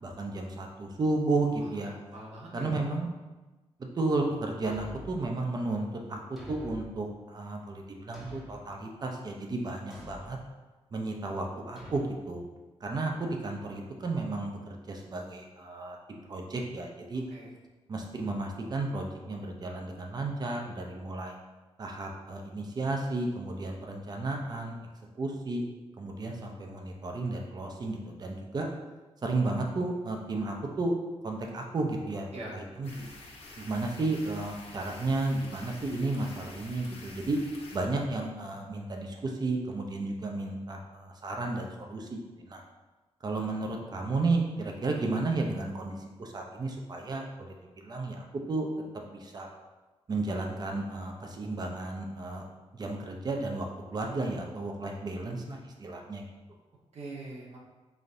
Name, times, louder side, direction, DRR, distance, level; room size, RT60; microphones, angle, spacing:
voice 1, 0.0-1.9 2.5-3.1 3.8-6.2 6.5-10.4 10.9-12.5 12.8-17.2 17.9-21.4 21.8-24.8 25.2-25.6 26.0-28.7 29.2-31.0 31.2-32.3 32.5-33.1 33.6-37.4 37.7-42.6 43.2-48.7 49.1-49.5 50.1-52.5 52.7-56.2, right 2 dB, 40° right, 1 dB, 0.5 m, -33 dB
voice 2, 1.6-2.8 17.3-17.5 32.3-32.6 44.7-44.9 56.9-57.6, right 2 dB, 70° right, -3 dB, 1.0 m, -44 dB
Thump thud, 4.6-5.3 6.4-6.9 8.1-8.7 9.9-10.3 11.8-12.1, left 1 dB, 5° right, 0.8 m, -45 dB
sound 1, 32.8-37.8, left 2 dB, 60° left, 0.7 m, -48 dB
4.9 x 2.7 x 2.5 m, 1.2 s
wide cardioid pair, 115°, 11 cm